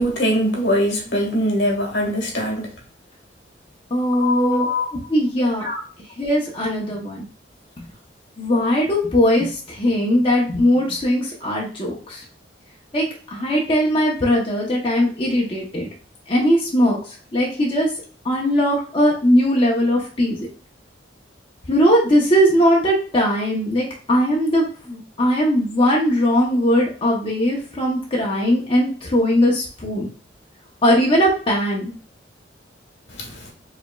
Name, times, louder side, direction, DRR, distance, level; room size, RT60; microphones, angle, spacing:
voice 1, 0.0-2.7 4.1-4.9 5.6-5.8, equal, 65° left, 1.3 m, -22 dB
voice 2, 3.9-4.7 5.1-5.7 6.2-7.3 7.8-7.9 8.4-12.2 12.9-13.0 13.3-15.9 16.3-17.9 18.2-20.5 21.7-30.1 30.8-31.9, equal, 30° left, 0.8 m, -19 dB
4.8 x 3.0 x 2.3 m
head